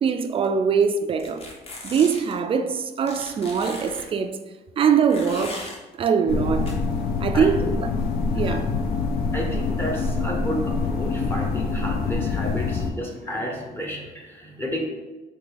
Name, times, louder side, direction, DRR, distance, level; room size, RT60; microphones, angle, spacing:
voice 1, 0.0-1.5 1.8-4.4 4.8-5.7 6.0-6.7 7.2-7.7 8.3-8.7, right 6 dB, 35° right, 0.4 m, -22 dB
Cloth Rips Multiple Fast, 1.2-2.3 3.1-4.1 5.1-5.8 6.7-6.8, left 2 dB, 35° left, 0.9 m, -38 dB
sound 1, 6.3-12.9, left 4 dB, 65° left, 0.6 m, -25 dB
voice 2, 7.3-7.7 8.3-8.7 9.3-14.8, equal, 10° left, 0.7 m, -32 dB
4.7 x 2.7 x 3.9 m
cardioid pair, 110°, 17 cm